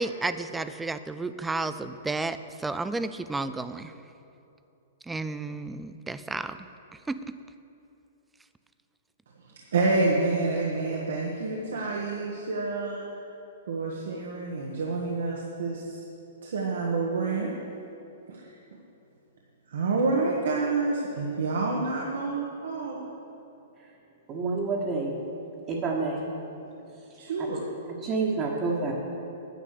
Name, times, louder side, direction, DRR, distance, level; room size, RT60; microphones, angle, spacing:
voice 1, 0.0-3.9 5.0-6.7 7.1-7.3, right 3 dB, 5° right, 12 dB, 0.3 m, -32 dB
voice 2, 9.7-13.1 13.7-16.0 16.4-17.5 18.3-18.5 19.7-23.0 27.2-27.6, right 3 dB, 80° right, -2 dB, 1.4 m, -28 dB
voice 3, 24.3-25.2 25.7-26.3 27.4-27.5 28.0-28.9, right 3 dB, 25° right, -4 dB, 1.4 m, -28 dB
10.0 x 8.5 x 6.6 m, 2.9 s
hypercardioid pair, 150°, 0 cm